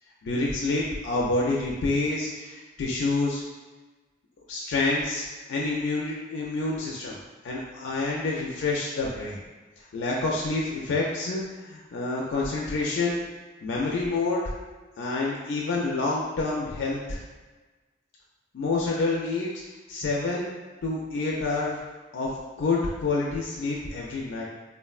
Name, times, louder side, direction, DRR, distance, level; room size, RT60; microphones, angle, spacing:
voice 1, 0.2-3.4 4.5-5.2 5.5-7.2 7.4-9.4 9.9-13.2 13.6-14.4 15.0-17.2 18.5-19.5 19.9-20.5 20.8-21.8 22.1-22.3 22.6-24.4, left 3 dB, 75° left, -3 dB, 0.4 m, -28 dB
3.5 x 2.1 x 2.3 m, 1.3 s
head